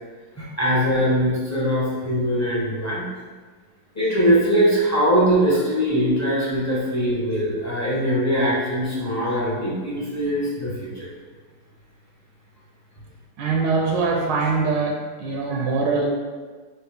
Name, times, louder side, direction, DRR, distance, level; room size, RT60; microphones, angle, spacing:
voice 1, 0.3-3.1 3.9-11.1, equal, 15° left, -7 dB, 0.6 m, -21 dB
voice 2, 13.4-16.1, right 4 dB, 80° right, 0 dB, 1.2 m, -23 dB
4.6 x 2.4 x 4.7 m, 1.4 s
omnidirectional pair, 2.0 m